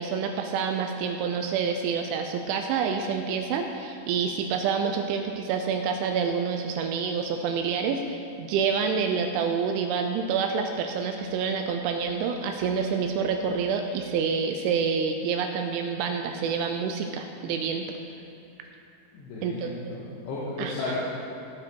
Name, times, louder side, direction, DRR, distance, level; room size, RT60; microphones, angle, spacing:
voice 1, 0.0-17.9 19.4-19.7 20.6-20.9, right 6 dB, 80° right, 4 dB, 2.9 m, -27 dB
voice 2, 19.1-20.9, left 3 dB, 75° left, -8 dB, 3.7 m, -34 dB
17.0 x 5.9 x 4.5 m, 2.6 s
omnidirectional pair, 5.7 m